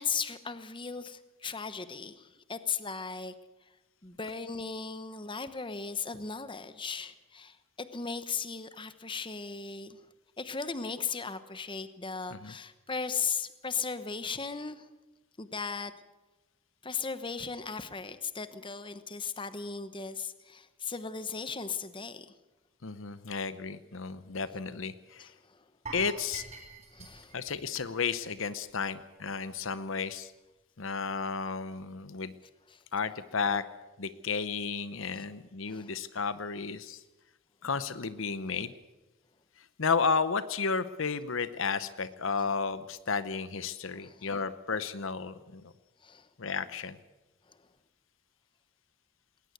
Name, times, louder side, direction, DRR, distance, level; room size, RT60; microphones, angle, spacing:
voice 1, 0.0-3.3 4.0-10.0 10.4-14.9 15.4-15.9 16.8-22.3 25.2-25.7 26.9-27.4 32.7-32.8 35.1-35.2 35.7-35.9 43.9-44.3 46.0-46.3 47.5-47.6, left 5 dB, 25° left, 12 dB, 1.1 m, -37 dB
voice 2, 22.8-25.3 25.9-26.4 27.3-30.3 30.8-32.3 32.9-33.6 34.0-37.0 37.6-38.7 39.8-45.6 46.4-47.0, left 5 dB, 65° left, 14 dB, 0.8 m, -32 dB
sound 1, 25.9-28.9 29.1-29.3 29.8-29.9, right 4 dB, 35° right, 4.6 m, -46 dB
20.5 x 19.0 x 8.1 m, 1.1 s
head